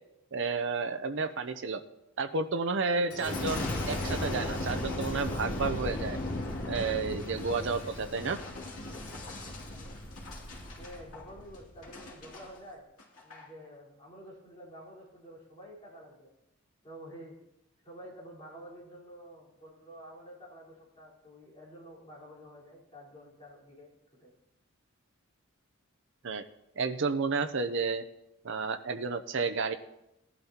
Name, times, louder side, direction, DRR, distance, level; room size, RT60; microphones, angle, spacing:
voice 1, 0.3-1.8 2.2-6.2 6.7-8.4 26.2-26.4 26.8-28.0 28.4-29.8, right 4 dB, 55° right, 9 dB, 0.6 m, -31 dB
Boom, 3.1-12.4 13.0-13.4, left 1 dB, 85° left, 2.4 m, -36 dB
voice 2, 10.8-12.8 13.2-16.3 16.8-17.4 17.8-23.9 24.2-24.3, equal, 25° left, -6 dB, 4.2 m, -49 dB
18.5 x 11.5 x 2.9 m, 0.88 s
head